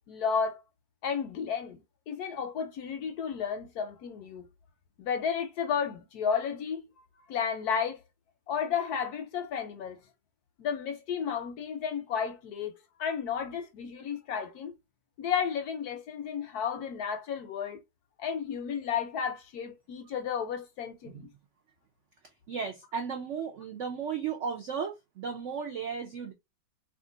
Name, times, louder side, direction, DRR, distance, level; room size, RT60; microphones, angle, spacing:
voice 1, 0.1-0.6 1.0-1.8 2.1-4.5 5.0-6.9 7.3-8.0 8.5-10.0 10.6-14.7 15.2-17.8 18.2-21.3, left 7 dB, 70° left, 1.0 m, -32 dB
voice 2, 22.5-26.3, right 6 dB, 80° right, 0.6 m, -35 dB
2.8 x 2.4 x 3.7 m
omnidirectional pair, 2.0 m